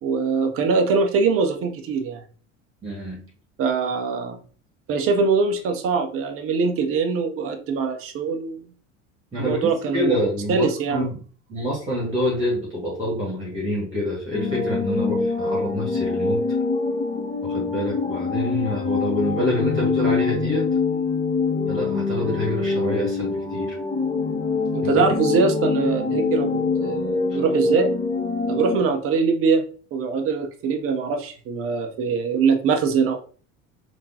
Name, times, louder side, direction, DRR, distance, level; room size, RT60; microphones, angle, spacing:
voice 1, 0.0-2.2 3.6-4.4 4.9-8.7 9.4-10.2 10.5-11.1 24.7-27.9 28.5-29.6 29.9-33.2, right 5 dB, 35° right, 5 dB, 0.8 m, -22 dB
voice 2, 2.8-3.2 9.3-11.2 11.5-16.4 17.4-20.7 21.7-23.8 24.8-24.9, left 1 dB, 15° right, -3 dB, 1.7 m, -27 dB
sound 1, 14.3-28.8, left 4 dB, 20° left, 1.1 m, -24 dB
3.6 x 3.0 x 2.7 m, 0.40 s
figure-of-eight pair, 75°, 39 cm